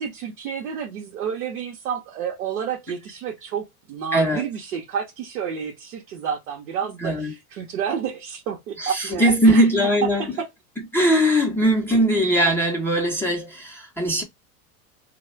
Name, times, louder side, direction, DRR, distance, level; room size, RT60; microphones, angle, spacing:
voice 1, 0.0-9.6 10.2-10.5, right 7 dB, 70° right, 0.8 m, -30 dB
voice 2, 4.1-4.4 7.0-7.3 8.8-10.4 10.9-14.2, right 1 dB, 5° left, 0.6 m, -20 dB
2.2 x 2.1 x 3.0 m
hypercardioid pair, 90°, 45 cm